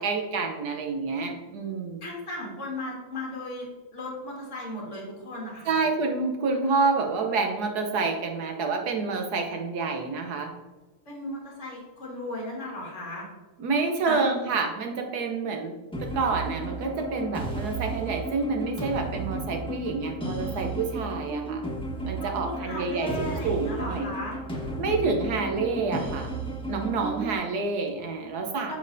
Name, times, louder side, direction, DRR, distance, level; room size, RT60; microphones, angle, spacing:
voice 1, 0.0-2.0 5.7-10.5 13.6-15.7 16.0-21.6 22.0-24.1 24.8-26.3 26.7-28.8, right 4 dB, 65° right, 3 dB, 1.0 m, -28 dB
voice 2, 2.0-3.7 3.9-5.8 11.1-13.3 14.1-14.3 22.2-24.4 28.7-28.8, left 1 dB, 35° left, -2 dB, 1.9 m, -36 dB
sound 1, 15.9-27.3, right 2 dB, 5° left, 0.4 m, -34 dB
7.3 x 5.3 x 2.6 m, 1.2 s
omnidirectional pair, 2.4 m